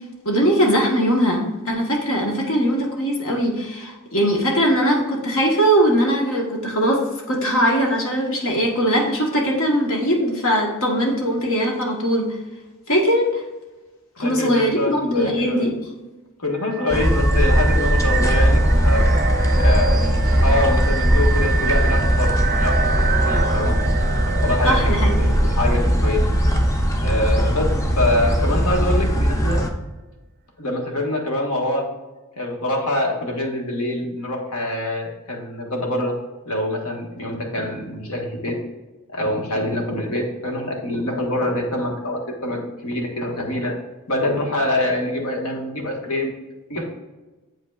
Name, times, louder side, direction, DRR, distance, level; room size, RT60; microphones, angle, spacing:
voice 1, 0.2-12.4 12.9-13.4 14.2-15.7 24.6-25.3, equal, 65° left, 0 dB, 1.3 m, -20 dB
voice 2, 14.2-15.7 16.4-19.0 19.6-20.0 20.4-23.8 24.3-26.2 27.0-29.6 30.6-31.9 32.4-36.2 36.4-38.6 39.1-43.8 44.1-46.3 46.7-46.8, left 1 dB, 85° left, 0 dB, 1.5 m, -25 dB
sound 1, 16.6-27.4, right 6 dB, 40° right, 0.4 m, -28 dB
sound 2, 16.9-29.7, equal, 15° left, 0.6 m, -19 dB
7.7 x 5.4 x 2.4 m, 1.1 s
head